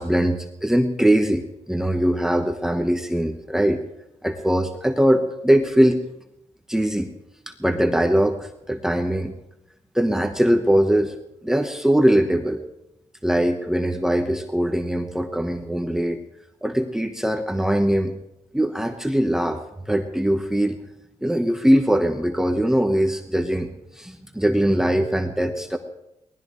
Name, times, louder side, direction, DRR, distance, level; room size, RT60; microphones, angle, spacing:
voice 1, 0.0-3.8 4.2-6.0 6.7-7.1 7.5-9.3 9.9-11.1 11.4-12.6 13.2-16.2 16.6-18.2 18.5-19.6 19.9-20.8 21.2-23.7 23.9-25.8, right 1 dB, 5° right, 5 dB, 1.1 m, -21 dB
24.0 x 19.0 x 3.1 m, 0.87 s
wide cardioid pair, 110°, 11 cm